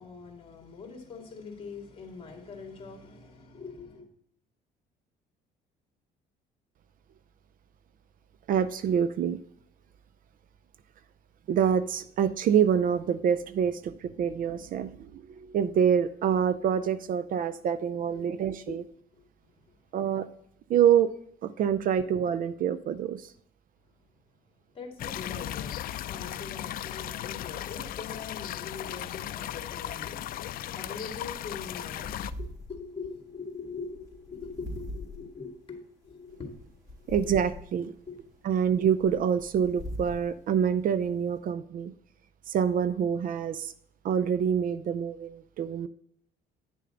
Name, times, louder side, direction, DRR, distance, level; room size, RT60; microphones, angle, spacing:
voice 1, 0.0-4.1 18.0-18.8 19.1-19.3 24.7-25.8 26.1-30.2 30.7-36.5 37.0-37.3 38.1-38.2, left 4 dB, 35° left, 2 dB, 2.4 m, -43 dB
voice 2, 8.5-9.4 11.5-18.8 19.9-20.3 20.7-21.1 21.4-23.2 37.1-37.9 38.4-41.9 42.5-43.7 44.0-45.9, right 8 dB, 55° right, 15 dB, 0.5 m, -26 dB
sound 1, 25.0-32.3, left 12 dB, 60° left, 0.5 m, -36 dB
sound 2, 31.9-41.4, equal, 20° right, 3.9 m, -44 dB
10.0 x 6.7 x 3.8 m, 0.68 s
cardioid pair, 110°, 17 cm